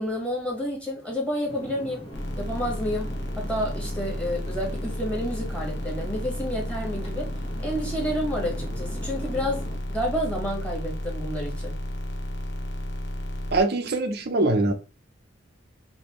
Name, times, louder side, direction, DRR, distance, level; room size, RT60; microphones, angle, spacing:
voice 1, 0.0-2.0 2.4-3.1 3.4-7.3 7.6-9.6 9.9-11.8, equal, 5° left, 1.5 m, -30 dB
sound 1, 1.5-9.8, left 1 dB, 30° left, 1.2 m, -41 dB
sound 2, 2.1-13.6, equal, 60° left, 0.9 m, -32 dB
voice 2, 13.5-14.7, right 2 dB, 55° right, 0.6 m, -23 dB
5.0 x 2.7 x 3.0 m
head